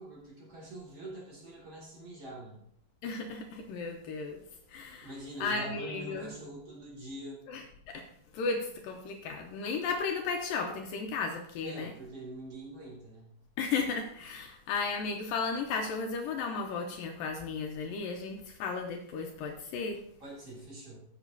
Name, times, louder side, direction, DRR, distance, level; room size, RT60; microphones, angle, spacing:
voice 1, 0.0-2.6 5.0-7.4 11.6-13.3 20.2-21.0, right 1 dB, 40° right, -4 dB, 3.0 m, -44 dB
voice 2, 3.0-4.4 4.7-5.1 5.4-6.3 7.5-8.1 8.3-11.9 13.6-20.0, left 4 dB, 75° left, 3 dB, 2.3 m, -34 dB
14.5 x 7.3 x 2.8 m, 0.68 s
omnidirectional pair, 4.5 m